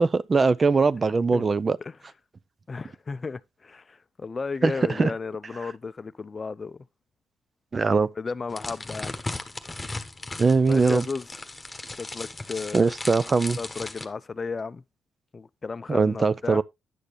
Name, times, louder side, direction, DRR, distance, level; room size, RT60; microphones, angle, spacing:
voice 1, 0.0-1.8 4.6-5.1 7.7-8.1 10.4-11.0 12.7-13.6 15.9-16.6, right 4 dB, 35° right, 0.5 m, -21 dB
voice 2, 2.7-6.8 8.2-9.1 10.7-11.3 12.0-12.9 13.6-14.8 15.3-16.6, left 4 dB, 40° left, 0.5 m, -34 dB
sound 1, 8.5-14.0, left 2 dB, 20° left, 1.2 m, -37 dB
10.0 x 6.6 x 3.1 m
supercardioid pair, 50°, 0 cm